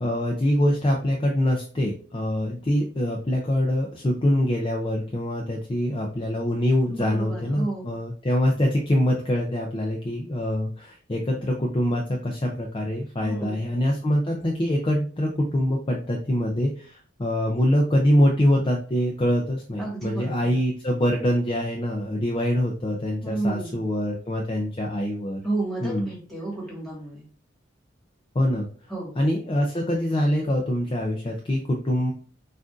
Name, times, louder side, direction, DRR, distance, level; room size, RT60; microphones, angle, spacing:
voice 1, 0.0-25.4 25.8-26.1 28.3-28.7 29.2-32.1, left 1 dB, 25° left, 0 dB, 0.5 m, -24 dB
voice 2, 6.8-8.0 13.2-13.7 19.8-20.5 23.2-23.8 25.4-27.2 28.9-29.2, right 2 dB, ahead, -5 dB, 1.7 m, -31 dB
6.0 x 2.5 x 2.5 m, 0.43 s
head